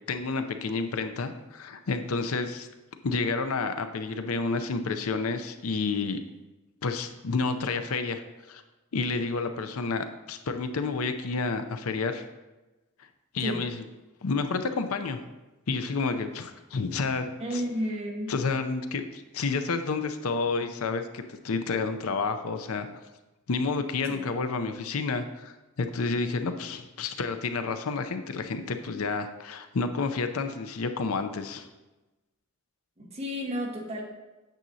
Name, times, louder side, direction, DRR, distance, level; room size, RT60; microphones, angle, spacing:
voice 1, 0.1-2.7 3.0-6.2 6.8-8.2 8.5-8.6 8.9-12.2 13.3-13.9 14.2-15.2 15.7-17.6 18.3-23.0 23.5-31.7, left 4 dB, 80° left, 8 dB, 0.6 m, -30 dB
voice 2, 17.4-18.3 33.0-34.0, equal, 30° right, -1 dB, 1.3 m, -32 dB
9.0 x 6.8 x 2.7 m, 1.1 s
head